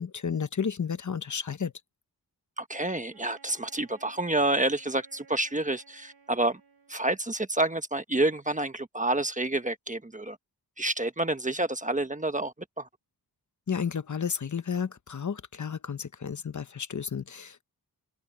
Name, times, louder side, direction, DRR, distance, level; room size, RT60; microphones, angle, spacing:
voice 1, 0.0-1.7 13.7-17.6, left 6 dB, 50° left, 1.0 m, -32 dB
voice 2, 2.6-6.6 6.9-10.4 10.8-12.9, right 2 dB, 20° right, 1.2 m, -28 dB
Wind instrument woodwind instrument, 3.1-7.5, right 5 dB, 70° right, 5.9 m, -58 dB
wide cardioid pair, 105°, 39 cm